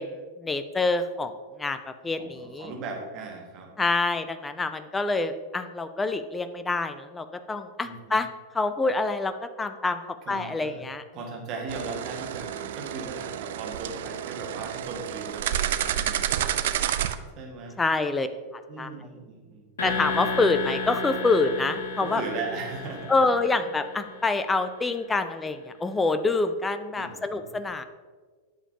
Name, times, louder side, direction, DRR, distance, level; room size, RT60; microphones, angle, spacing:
voice 1, 0.0-2.7 3.8-8.3 8.5-10.0 10.3-11.0 17.8-18.3 18.8-18.9 19.8-22.2 23.1-27.8, left 3 dB, 10° left, 10 dB, 0.5 m, -26 dB
voice 2, 2.2-3.7 7.8-8.2 10.3-10.8 11.1-16.4 17.4-17.8 18.7-19.7 22.0-23.1 27.0-27.5, right 4 dB, 35° right, 1 dB, 1.8 m, -38 dB
sound 1, 11.7-17.2, right 11 dB, 55° right, 0.4 m, -30 dB
sound 2, 19.8-24.7, left 4 dB, 65° left, 1.8 m, -33 dB
11.0 x 7.0 x 2.9 m, 1.5 s
figure-of-eight pair, 90°, 0 cm